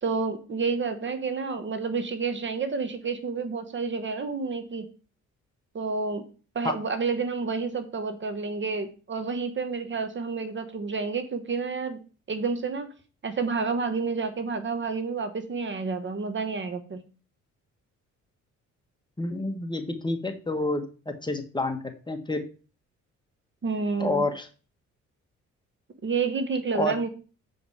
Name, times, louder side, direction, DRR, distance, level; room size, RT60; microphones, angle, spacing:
voice 1, 0.0-4.9 5.7-6.2 6.5-12.0 12.3-12.9 13.2-17.0 23.6-24.2 26.0-27.1, right 4 dB, 40° right, 10 dB, 1.2 m, -29 dB
voice 2, 19.2-21.8 22.1-22.4 24.0-24.5 26.7-27.0, left 2 dB, 15° left, 6 dB, 1.3 m, -28 dB
7.0 x 5.2 x 4.8 m, 0.36 s
cardioid pair, 90°, 30 cm